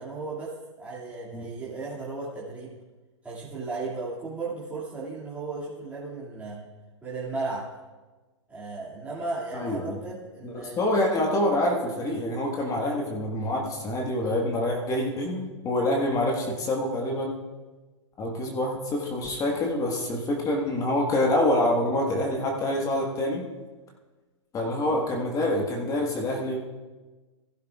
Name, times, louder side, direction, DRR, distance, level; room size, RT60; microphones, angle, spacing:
voice 1, 0.0-2.7 3.2-6.6 7.0-7.7 8.5-10.8, right 3 dB, 10° right, -9 dB, 2.3 m, -35 dB
voice 2, 9.5-10.0 10.4-17.3 18.2-23.4 24.5-26.6, left 1 dB, 20° left, 0 dB, 1.5 m, -26 dB
15.5 x 11.5 x 2.4 m, 1.3 s
figure-of-eight pair, 115°, 16 cm